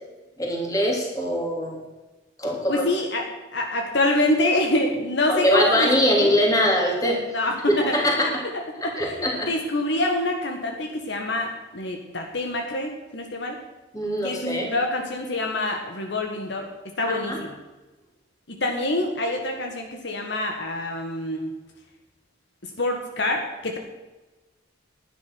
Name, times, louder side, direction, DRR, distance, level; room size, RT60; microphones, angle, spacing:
voice 1, 0.4-1.8 2.4-2.9 5.3-7.2 7.7-8.4 8.8-9.5 13.9-14.7 17.1-17.4, equal, 20° left, -1 dB, 3.2 m, -22 dB
voice 2, 2.7-3.3 3.5-6.3 7.3-13.6 14.2-16.7 17.0-17.5 18.5-21.5 22.6-23.8, left 1 dB, 65° left, 2 dB, 1.6 m, -26 dB
11.5 x 9.9 x 6.2 m, 1.1 s
head